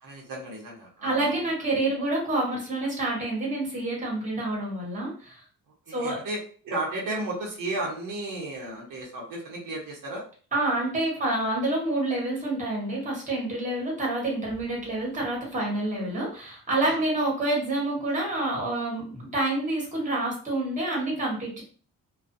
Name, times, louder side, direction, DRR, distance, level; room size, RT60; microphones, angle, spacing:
voice 1, 0.0-1.4 5.9-6.4 6.6-10.2 16.9-17.0, right 2 dB, 70° right, -2 dB, 0.9 m, -34 dB
voice 2, 1.0-5.4 5.9-6.2 10.5-21.6, right 2 dB, 20° right, -3 dB, 1.2 m, -28 dB
2.4 x 2.3 x 2.6 m, 0.42 s
cardioid pair, 125°, 34 cm